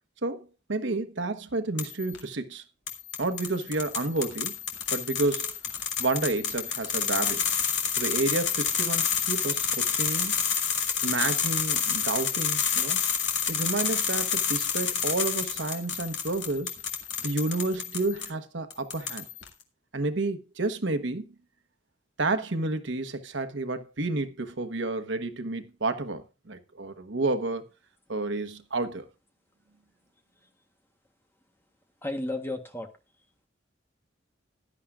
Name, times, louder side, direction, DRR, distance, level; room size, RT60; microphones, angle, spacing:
voice 1, 0.2-2.6 3.2-4.6 4.9-5.5 6.0-7.4 7.9-10.3 11.0-13.0 13.5-16.7 17.2-19.2 19.9-21.3 22.2-27.7 28.1-29.0, right 2 dB, 90° right, 1.2 m, -30 dB
sound 1, 1.8-2.2 2.9-18.3 18.7-19.5, left 7 dB, 75° left, 2.1 m, -29 dB
voice 2, 32.0-32.9, left 2 dB, 10° left, 1.2 m, -32 dB
16.0 x 11.0 x 2.5 m
head